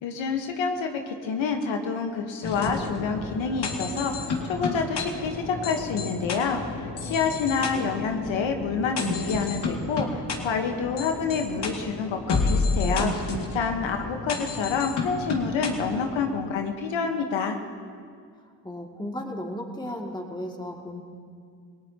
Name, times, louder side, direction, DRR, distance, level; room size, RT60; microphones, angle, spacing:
voice 1, 0.0-4.1 4.5-13.1 13.5-17.6, left 5 dB, 75° left, 4 dB, 1.4 m, -28 dB
sound 1, 2.4-16.3, left 3 dB, 60° left, 2.4 m, -31 dB
voice 2, 7.6-8.1 18.6-21.0, left 1 dB, 10° left, 0 dB, 2.5 m, -35 dB
28.0 x 18.0 x 2.9 m, 2.2 s
supercardioid pair, 65°, 46 cm